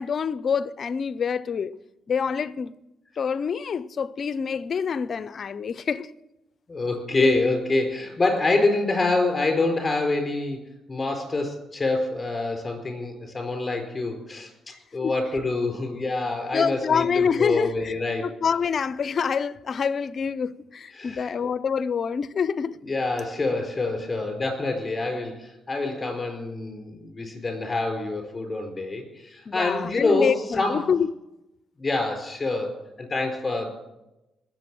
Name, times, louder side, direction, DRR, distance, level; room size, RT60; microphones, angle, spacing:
voice 1, 0.0-1.8 2.1-2.7 3.2-6.1 15.0-15.1 16.5-18.0 18.2-22.8 29.5-31.1, left 6 dB, 45° left, 0.5 m, -26 dB
voice 2, 6.7-10.6 10.9-14.5 14.9-18.2 21.0-21.3 22.8-30.9 31.8-33.9, left 2 dB, 25° left, 4.4 m, -26 dB
20.0 x 7.5 x 6.1 m
cardioid pair, 110°, 0 cm